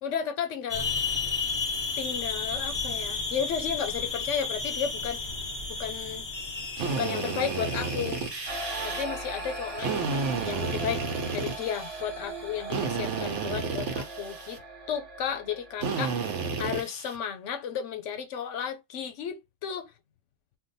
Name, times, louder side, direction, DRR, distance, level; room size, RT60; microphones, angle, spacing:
voice 1, 0.0-0.9 2.0-5.2 5.7-6.3 6.8-8.3 8.8-11.0 11.3-14.6 14.9-19.8, left 8 dB, 80° left, 1.0 m, -33 dB
sound 1, 0.7-12.7, left 4 dB, 30° left, 0.6 m, -34 dB
Drill, 6.8-9.0 9.8-12.0 12.7-14.6 15.8-17.2, right 5 dB, 80° right, 1.1 m, -31 dB
sound 2, 8.5-15.9, right 2 dB, 60° right, 1.2 m, -39 dB
2.6 x 2.2 x 3.9 m
omnidirectional pair, 1.2 m